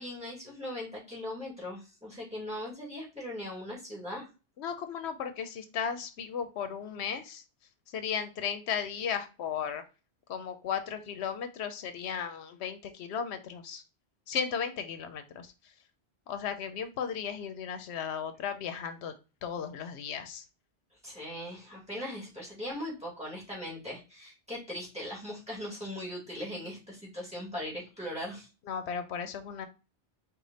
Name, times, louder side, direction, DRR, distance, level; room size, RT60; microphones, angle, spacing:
voice 1, 0.0-4.3 21.0-28.5, left 1 dB, 5° right, -5 dB, 2.2 m, -39 dB
voice 2, 4.6-7.4 7.9-9.8 10.3-13.8 14.3-15.5 16.3-19.1 19.4-20.4 28.7-29.7, left 7 dB, 85° left, 9 dB, 0.9 m, -35 dB
4.9 x 2.5 x 4.0 m, 0.31 s
omnidirectional pair, 1.1 m